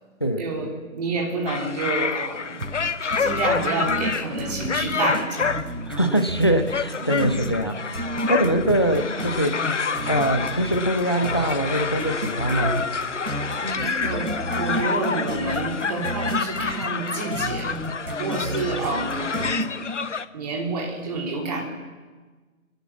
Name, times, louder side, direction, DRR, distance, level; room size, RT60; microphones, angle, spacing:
voice 1, 0.9-2.6 3.2-5.7 7.0-7.3 8.2-8.3 13.6-17.8 18.2-19.6 20.3-21.6, right 3 dB, 25° right, 0 dB, 3.4 m, -29 dB
sound 1, 1.5-20.3, left 5 dB, 55° left, 0.9 m, -28 dB
sound 2, 2.6-20.1, right 1 dB, 85° right, 2.9 m, -32 dB
voice 2, 5.9-9.6 10.1-12.8, right 1 dB, 20° left, 9 dB, 0.6 m, -23 dB
29.5 x 12.5 x 7.3 m, 1.3 s
figure-of-eight pair, 150°, 43 cm